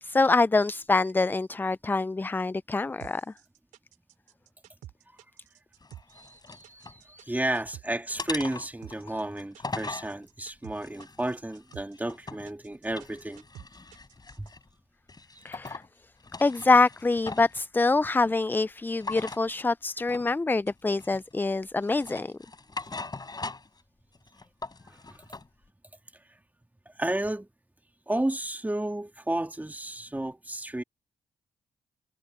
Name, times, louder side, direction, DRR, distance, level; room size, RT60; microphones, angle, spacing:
voice 1, 0.0-3.2 6.1-7.2 15.4-15.8 16.4-22.3, left 3 dB, 15° left, 0.4 m, -25 dB
sound 1, 3.0-14.5, right 13 dB, 85° right, 3.5 m, -49 dB
sound 2, 5.8-7.0 7.4-7.8 8.2-10.1 10.7-12.5 12.8-14.7 15.1-15.9 16.2-17.6 19.0-19.4 20.1-20.3 20.7-21.4 21.8-23.8 24.1-25.5, left 3 dB, 30° left, 5.0 m, -40 dB
voice 2, 7.3-13.4 14.4-14.5 25.1-25.2 27.0-27.5 28.1-30.8, right 1 dB, 10° right, 2.2 m, -32 dB
supercardioid pair, 45°, 13 cm